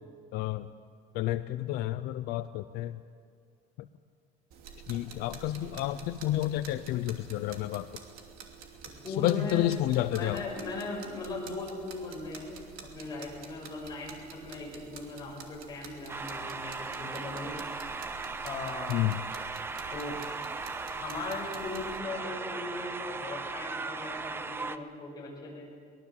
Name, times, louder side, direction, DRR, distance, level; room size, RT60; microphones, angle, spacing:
voice 1, 0.3-0.7 1.1-3.0 4.9-7.9 9.1-10.4 18.9-19.2, left 14 dB, 80° left, 11 dB, 0.7 m, -30 dB
sound 1, 4.5-22.0, right 6 dB, 65° right, 2.8 m, -49 dB
voice 2, 8.8-9.6 10.1-17.5 18.4-18.9 19.9-20.4 20.9-25.7, left 2 dB, 25° left, -3 dB, 6.5 m, -39 dB
sound 2, 16.1-24.8, right 4 dB, 15° right, 0.6 m, -37 dB
23.5 x 20.5 x 7.5 m, 2.1 s
cardioid pair, 180°, 16 cm